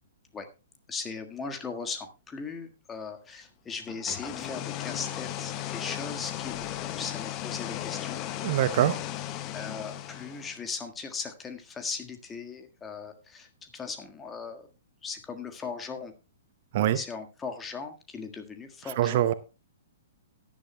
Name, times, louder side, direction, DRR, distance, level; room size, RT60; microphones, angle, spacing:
voice 1, 0.9-8.2 9.5-14.6 15.0-16.1 16.9-19.2, left 5 dB, 15° left, 6 dB, 1.6 m, -38 dB
sound 1, 3.9-10.6, left 12 dB, 30° left, 0.8 m, -36 dB
voice 2, 8.4-9.0 16.7-17.0 19.0-19.3, right 12 dB, 45° right, 15 dB, 0.7 m, -23 dB
16.5 x 10.5 x 2.2 m, 0.30 s
figure-of-eight pair, 110°, 0 cm